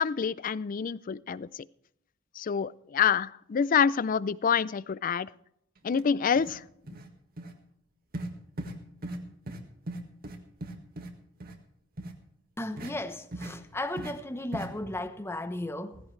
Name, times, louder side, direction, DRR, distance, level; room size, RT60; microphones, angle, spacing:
voice 1, 0.0-1.5 2.4-5.3 5.8-6.6, left 7 dB, 45° left, 0.4 m, -27 dB
sound 1, 5.9-6.0 6.4-6.6 6.9-7.1 7.4-7.5 8.1-8.3 8.6-8.8 9.0-9.2 9.5-9.6 9.9-11.1 11.4-11.6 12.0-12.1 12.8-12.9 13.3-13.6 14.0-14.1 14.5-14.7, right 1 dB, 50° right, 1.7 m, -38 dB
voice 2, 12.6-16.0, left 1 dB, 15° left, 0.9 m, -35 dB
17.0 x 15.5 x 3.2 m
head